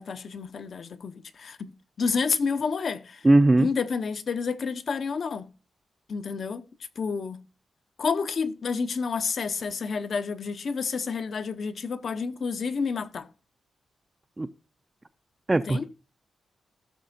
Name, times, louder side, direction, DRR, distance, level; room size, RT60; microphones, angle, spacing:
voice 1, 0.0-1.7 2.0-3.3 3.6-5.5 6.1-6.6 7.0-7.4 8.0-13.3 15.5-15.9, left 5 dB, 45° left, 0.6 m, -29 dB
voice 2, 3.2-3.7 14.4-14.5 15.5-15.9, right 2 dB, 15° right, 0.4 m, -19 dB
16.5 x 6.6 x 2.6 m
wide cardioid pair, 175°, 0 cm